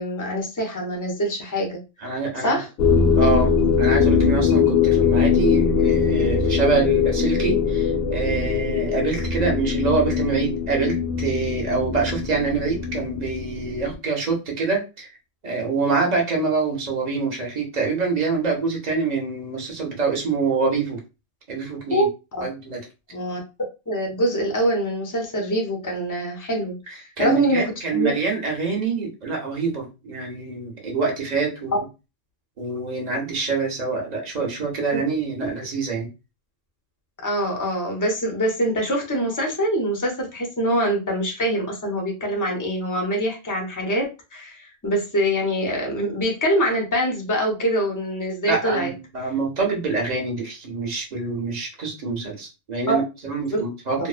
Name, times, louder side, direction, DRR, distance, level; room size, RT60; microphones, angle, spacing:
voice 1, 0.0-1.8 2.4-2.7 21.9-22.4 23.1-23.4 23.9-27.6 27.9-28.1 35.4-35.5 37.2-48.9 52.9-53.0 53.5-53.6 54.0-54.1, equal, 25° left, 1 dB, 0.4 m, -24 dB
voice 2, 2.0-2.6 3.2-3.5 3.8-15.1 15.4-21.0 21.5-22.1 22.4-22.8 26.9-31.8 32.6-36.1 48.5-54.1, right 4 dB, 45° right, 0 dB, 0.7 m, -25 dB
sound 1, 2.8-14.0, left 6 dB, 65° left, 0.8 m, -21 dB
2.6 x 2.0 x 2.4 m, 0.28 s
omnidirectional pair, 1.2 m